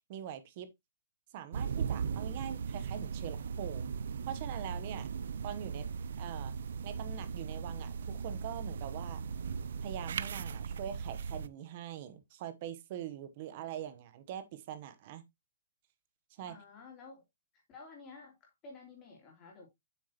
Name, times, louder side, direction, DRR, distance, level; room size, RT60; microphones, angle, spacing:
voice 1, 0.1-0.7 1.3-3.9 4.3-5.1 5.4-5.9 6.2-6.5 6.8-9.2 9.8-15.2 16.4-16.6, right 10 dB, 35° right, 0.9 m, -43 dB
sound 1, 1.5-11.5, right 6 dB, 60° right, 0.4 m, -38 dB
voice 2, 16.5-17.2 17.5-19.7, left 4 dB, 15° left, 2.9 m, -53 dB
7.7 x 6.4 x 2.9 m
hypercardioid pair, 170°, 0 cm